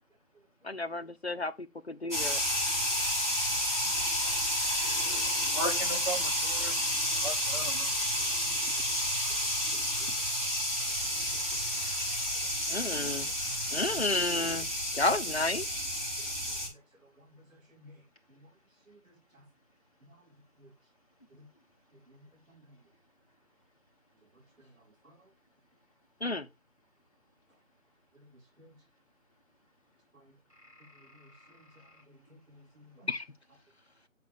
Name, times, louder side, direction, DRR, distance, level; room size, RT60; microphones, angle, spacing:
voice 1, 0.6-2.4 12.7-13.3 13.7-14.7 15.0-15.6 26.2-26.5 33.1-33.2, left 2 dB, 50° left, 0.8 m, -31 dB
sound 1, 2.1-16.7, equal, 10° right, 2.7 m, -30 dB
voice 2, 5.5-6.7 7.2-7.9, equal, 25° left, 1.0 m, -36 dB
voice 3, 7.9-10.5 10.8-11.3 11.7-12.8 13.2-14.0 14.9-15.0 16.2-16.8 17.2-18.0 18.3-18.5 18.9-19.4 20.0-20.2 20.6-20.7 21.3-21.5 22.1-22.8 24.6-24.7 25.0-25.3 28.1-28.3 28.6-28.8 30.1-30.3 30.9-31.7 32.1-33.1, equal, 70° right, 3.1 m, -59 dB
8.2 x 4.2 x 4.8 m
figure-of-eight pair, 175°, 41 cm